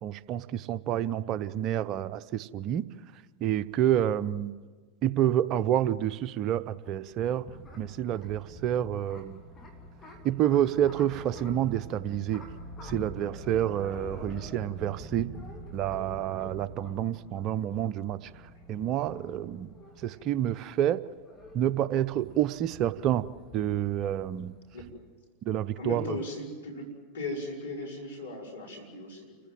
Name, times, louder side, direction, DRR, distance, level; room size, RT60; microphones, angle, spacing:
voice 1, 0.0-2.8 3.4-4.5 5.0-7.5 7.8-9.4 10.2-12.4 12.8-15.3 15.7-18.3 18.7-19.7 20.0-21.0 21.5-23.3 23.5-24.6 25.5-26.2, right 11 dB, 45° right, 16 dB, 0.7 m, -28 dB
sound 1, 7.1-24.9, equal, 25° left, 3.1 m, -46 dB
voice 2, 25.8-29.4, left 2 dB, 80° left, -1 dB, 5.4 m, -37 dB
28.5 x 15.5 x 7.7 m, 1.5 s
hypercardioid pair, 90°, 0 cm